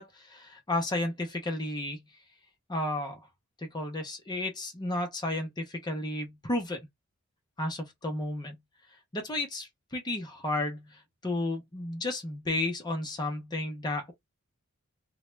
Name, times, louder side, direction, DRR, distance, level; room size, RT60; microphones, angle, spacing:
voice 1, 0.0-2.0 2.7-3.3 3.6-6.8 7.6-8.6 9.1-14.1, left 1 dB, 20° left, 0.6 m, -33 dB
2.2 x 2.1 x 3.0 m
head